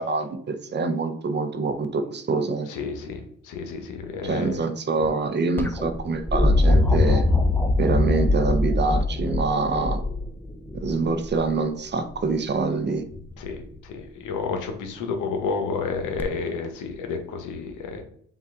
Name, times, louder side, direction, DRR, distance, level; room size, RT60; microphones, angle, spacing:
voice 1, 0.0-2.7 4.2-7.3 7.8-10.0 10.7-13.0, right 3 dB, 35° right, 8 dB, 0.6 m, -25 dB
voice 2, 2.7-4.5 13.4-18.0, left 5 dB, 90° left, 5 dB, 0.8 m, -31 dB
sound 1, 5.6-11.5 13.1-13.6 16.2-16.3, left 2 dB, 5° left, 0.5 m, -22 dB
5.4 x 2.4 x 3.5 m, 0.63 s
cardioid pair, 90°, 30 cm